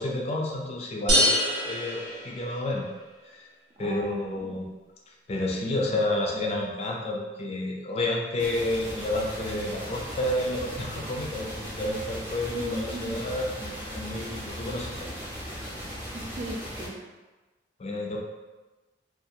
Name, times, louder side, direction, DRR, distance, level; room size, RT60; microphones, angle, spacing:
voice 1, 0.0-2.9 3.3-3.5 3.8-4.6 5.1-15.2 17.8-18.2, left 1 dB, 35° left, 0 dB, 0.4 m, -30 dB
sound 1, 1.1-2.9, equal, 80° right, 1.0 m, -25 dB
voice 2, 3.8-4.6 12.5-13.2 16.1-17.0, right 2 dB, 35° right, 0 dB, 0.4 m, -37 dB
sound 2, 8.4-16.9, equal, 10° right, 0.7 m, -37 dB
2.7 x 2.3 x 2.6 m, 1.2 s
head